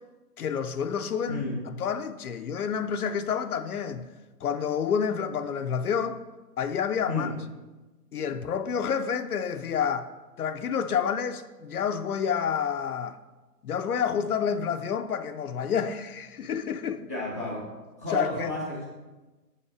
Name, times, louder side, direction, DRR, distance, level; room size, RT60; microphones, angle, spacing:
voice 1, 0.4-4.0 4.4-6.2 6.6-7.3 8.1-10.1 10.4-13.2 13.6-17.0 18.1-18.5, left 7 dB, 65° left, 0.6 m, -29 dB
voice 2, 17.1-17.6 18.0-18.9, left 2 dB, 10° right, 0.7 m, -31 dB
7.9 x 5.7 x 4.7 m
hypercardioid pair, 175°, 48 cm